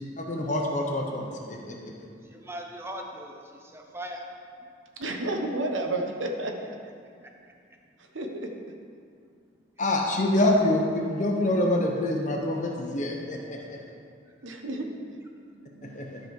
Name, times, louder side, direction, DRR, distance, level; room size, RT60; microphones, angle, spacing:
voice 1, 0.0-1.9 9.8-13.8 15.8-16.2, left 1 dB, 40° left, 1 dB, 1.0 m, -26 dB
voice 2, 2.3-4.3 15.5-16.1, right 1 dB, 15° right, 2 dB, 0.8 m, -40 dB
voice 3, 5.0-6.9 8.0-8.7 13.6-13.7 14.4-15.2, right 2 dB, 85° right, 3 dB, 1.0 m, -32 dB
12.0 x 5.2 x 4.7 m, 2.3 s
head